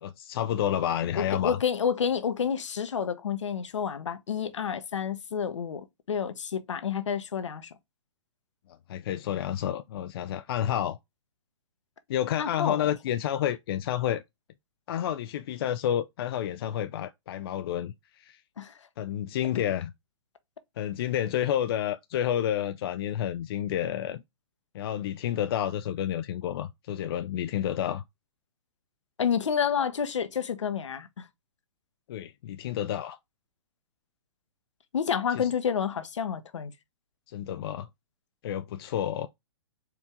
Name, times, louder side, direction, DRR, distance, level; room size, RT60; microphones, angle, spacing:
voice 1, 0.0-1.6 8.9-11.0 12.1-14.2 14.9-18.4 19.0-19.9 20.8-24.2 24.7-28.0 32.1-33.2 35.4-35.5 37.3-37.9 38.4-39.3, left 10 dB, 50° left, 0.4 m, -30 dB
voice 2, 1.1-7.7 12.4-12.9 18.6-18.7 29.2-31.2 34.9-36.7, left 7 dB, 75° left, 0.8 m, -29 dB
4.5 x 2.7 x 3.5 m
hypercardioid pair, 125°, 16 cm